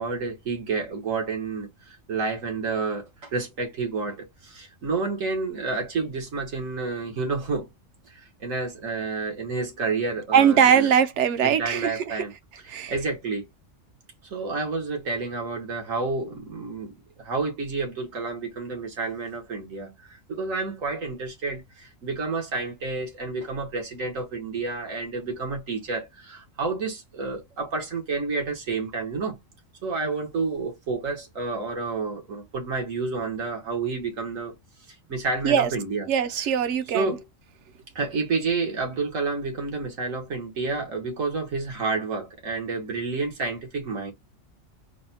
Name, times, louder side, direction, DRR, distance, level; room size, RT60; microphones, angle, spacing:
voice 1, 0.0-7.7 8.1-10.9 11.4-12.3 12.9-13.5 14.2-29.4 29.8-34.5 35.1-36.1 36.9-37.2 38.0-44.1, right 4 dB, 85° right, 1.8 m, -30 dB
voice 2, 10.3-12.2 12.7-12.9 35.4-35.7 36.1-37.2, right 8 dB, 65° right, 0.9 m, -21 dB
4.1 x 2.2 x 4.1 m
omnidirectional pair, 1.3 m